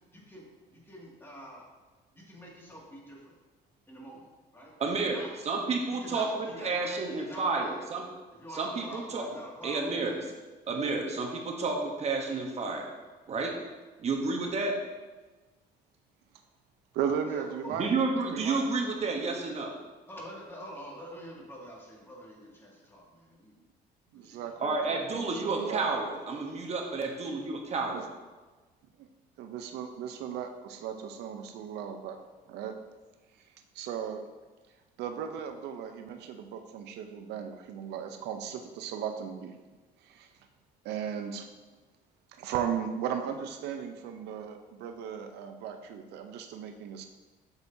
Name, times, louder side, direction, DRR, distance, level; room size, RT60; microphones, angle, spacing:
voice 1, 0.1-0.4 0.7-1.6 2.1-3.4 3.9-4.3 4.5-5.3 5.9-7.8 8.3-10.4 17.3-17.8 20.1-23.6 24.1-25.3, equal, 15° left, -3 dB, 2.1 m, -47 dB
voice 2, 4.8-8.1 8.5-9.3 9.6-10.2 10.7-12.9 13.3-13.5 14.0-14.7 17.8-19.7 24.6-28.0, right 3 dB, 40° right, 1 dB, 0.9 m, -30 dB
voice 3, 16.9-17.9 18.3-18.6 24.1-25.8 27.9-28.1 29.0-29.1 29.4-32.2 32.5-32.8 33.7-34.2 35.0-39.5 40.0-40.3 40.8-41.5 42.3-47.1, right 8 dB, 80° right, 6 dB, 0.6 m, -36 dB
8.0 x 7.0 x 2.7 m, 1.2 s
cardioid pair, 110°, 17 cm